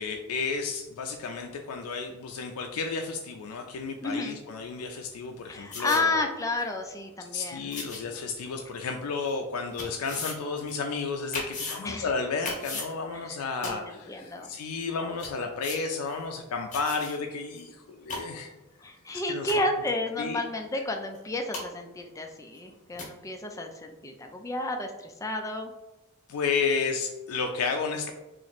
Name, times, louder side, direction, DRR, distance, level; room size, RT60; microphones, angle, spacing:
voice 1, 0.0-6.3 7.3-18.5 19.1-19.6 20.2-20.4 26.3-28.1, left 4 dB, 85° left, 3 dB, 0.4 m, -32 dB
voice 2, 4.0-4.4 5.5-7.7 11.8-12.1 13.1-13.4 13.6-13.8 14.1-14.5 18.8-25.7, left 2 dB, 15° left, 3 dB, 0.4 m, -31 dB
sound 1, 5.7-6.0 6.6-6.7 7.7-8.0 8.8-8.9 9.8-10.3 10.7-10.8 11.3-11.8 12.4-12.9 13.6-13.7 14.4-14.5 14.8-14.9 15.2-15.3 15.6-15.8 16.1-16.2 16.7-17.2 17.6-17.7 17.9-18.2 19.1-19.2 19.5-19.7 21.1-21.2 21.5-21.6 22.5-22.6 23.0-23.1, left 3 dB, 35° left, 0.9 m, -36 dB
2.9 x 2.5 x 4.1 m, 1.0 s
head